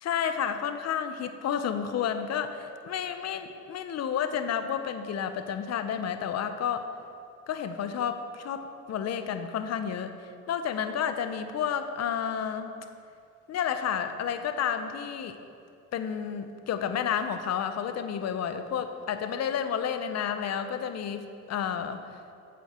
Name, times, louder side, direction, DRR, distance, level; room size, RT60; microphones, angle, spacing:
voice 1, 0.0-6.9 7.5-10.1 10.5-12.7 13.5-15.4 15.9-22.0, left 8 dB, 60° left, 9 dB, 0.7 m, -31 dB
9.5 x 7.3 x 4.3 m, 2.5 s
cardioid pair, 90°, 30 cm